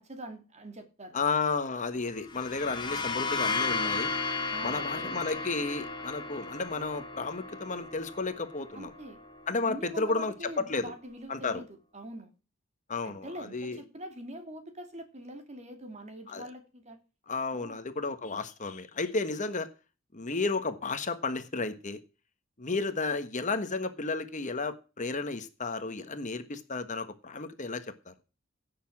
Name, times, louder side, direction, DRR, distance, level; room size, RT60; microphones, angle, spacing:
voice 1, 0.0-1.2 4.5-5.2 8.7-9.2 9.6-11.7 11.9-12.3 13.0-17.0 17.5-17.8, right 1 dB, 35° right, 2.7 m, -44 dB
voice 2, 1.1-4.1 4.6-8.9 9.5-10.9 11.3-11.6 12.9-13.8 16.3-16.5 17.3-19.7 20.1-22.0 22.6-28.1, left 3 dB, 40° left, 1.4 m, -32 dB
sound 1, 2.2-9.8, left 4 dB, 25° left, 2.0 m, -34 dB
17.0 x 7.0 x 5.9 m
head